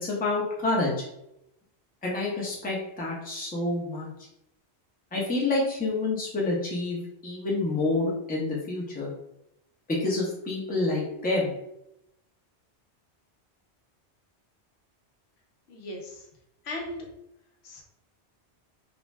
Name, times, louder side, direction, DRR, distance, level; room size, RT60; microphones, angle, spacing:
voice 1, 0.0-0.9 2.0-4.1 5.1-7.0 7.2-9.1 9.9-11.5, left 2 dB, 10° left, -4 dB, 0.5 m, -28 dB
voice 2, 15.7-16.3 16.6-17.1 17.6-17.8, left 1 dB, 70° left, 0 dB, 0.8 m, -37 dB
2.5 x 2.1 x 3.2 m, 0.82 s
omnidirectional pair, 1.1 m